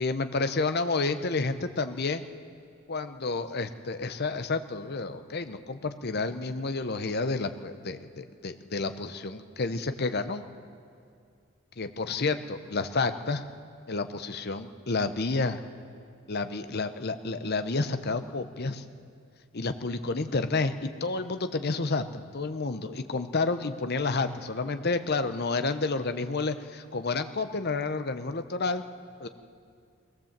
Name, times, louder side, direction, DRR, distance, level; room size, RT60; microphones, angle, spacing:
voice 1, 0.0-2.2 2.9-10.4 11.8-13.4 13.9-15.6 16.3-18.8 19.5-28.8 29.2-29.3, left 3 dB, 45° left, 9 dB, 0.8 m, -30 dB
21.5 x 18.0 x 7.4 m, 2.3 s
head